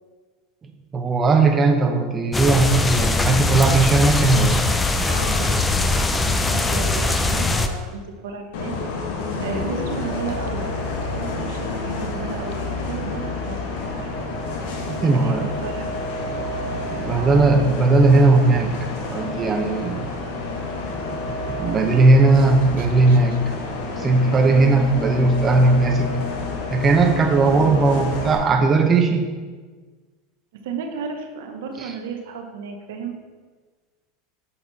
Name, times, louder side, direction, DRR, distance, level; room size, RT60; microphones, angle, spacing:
voice 1, 0.9-4.7 14.9-15.5 16.9-18.7 19.1-20.1 21.5-23.4 24.0-26.2 26.7-29.3 31.8-31.9, right 3 dB, 25° right, 4 dB, 0.9 m, -17 dB
sound 1, 2.3-7.7, left 2 dB, 15° left, 0.5 m, -21 dB
voice 2, 5.0-8.7 9.4-14.2 14.9-15.9 17.2-17.4 22.8-23.2 30.6-33.2, right 5 dB, 80° right, 4 dB, 0.9 m, -34 dB
Bus, 8.5-28.4, left 3 dB, 70° left, 1.2 m, -29 dB
7.1 x 4.3 x 4.1 m, 1.4 s
hypercardioid pair, 105°, 0 cm